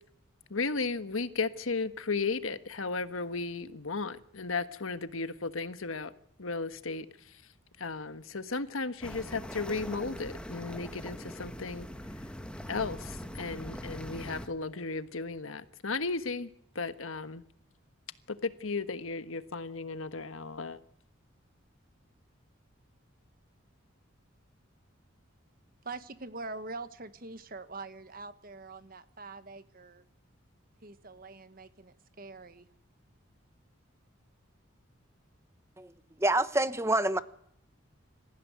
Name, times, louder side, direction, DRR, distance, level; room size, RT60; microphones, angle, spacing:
voice 1, 0.5-6.1 6.4-7.1 7.8-11.9 12.7-16.5 16.7-17.4 18.3-20.8, left 4 dB, 80° left, 1.4 m, -35 dB
sound 1, 9.0-14.5, equal, 5° left, 1.7 m, -42 dB
voice 2, 25.8-30.0 30.8-32.7, right 3 dB, 45° right, 1.4 m, -44 dB
voice 3, 36.2-37.2, right 1 dB, 15° right, 0.9 m, -26 dB
26.0 x 15.5 x 9.5 m
head